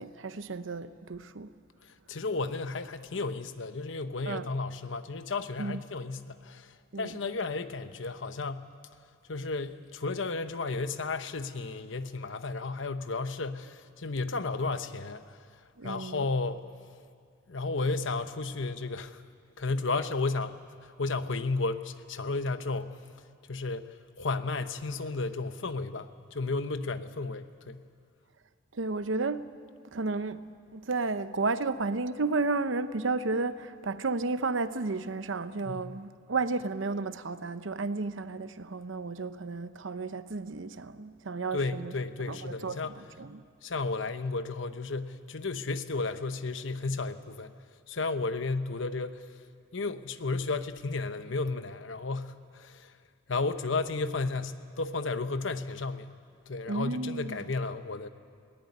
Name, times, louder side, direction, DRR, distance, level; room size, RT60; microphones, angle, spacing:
voice 1, 0.0-1.5 4.2-4.5 5.6-5.8 6.9-7.2 15.8-16.2 28.7-29.4 29.9-30.4 30.7-41.9 42.3-42.8 43.2-43.4 56.7-57.4, right 3 dB, 70° right, 0.8 m, -32 dB
voice 2, 2.1-8.7 9.3-15.4 15.8-16.6 17.5-19.2 19.6-23.0 23.5-23.9 24.2-27.8 35.6-36.0 41.5-42.9 43.6-47.5 47.9-49.4 49.7-52.9 53.3-56.2 56.5-58.1, left 3 dB, 70° left, 0.9 m, -33 dB
20.5 x 17.5 x 9.5 m
head